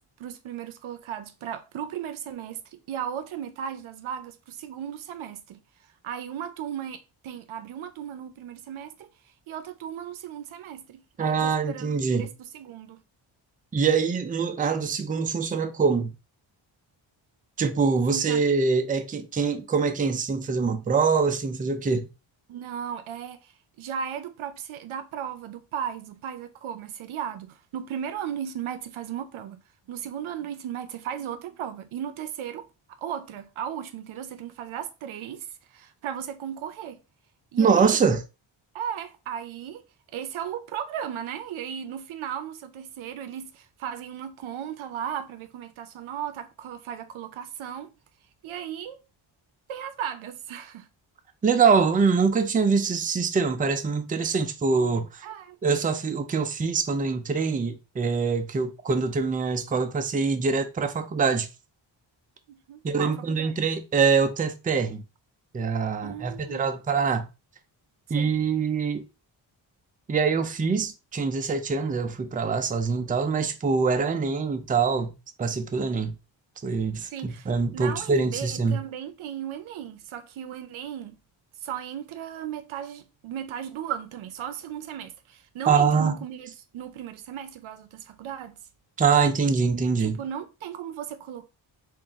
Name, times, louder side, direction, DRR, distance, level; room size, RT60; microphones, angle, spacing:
voice 1, 0.2-5.6 6.0-9.1 9.5-13.0 18.1-18.4 22.5-23.5 23.8-29.6 29.9-32.7 33.0-37.0 37.5-38.0 38.7-39.8 40.1-47.9 48.4-49.0 49.7-50.9 55.2-55.6 62.5-63.5 66.0-66.7 68.2-68.3 77.1-81.2 81.6-88.6 90.0-91.5, right 9 dB, 85° right, 0.6 m, -36 dB
voice 2, 11.2-12.3 13.7-16.1 17.6-22.1 37.6-38.2 51.4-55.2 55.6-61.5 62.8-65.0 65.5-67.3 68.1-69.1 70.1-76.1 76.6-78.8 85.7-86.2 89.0-90.2, right 5 dB, 20° right, 0.3 m, -24 dB
3.9 x 2.5 x 3.4 m
wide cardioid pair, 160°, 47 cm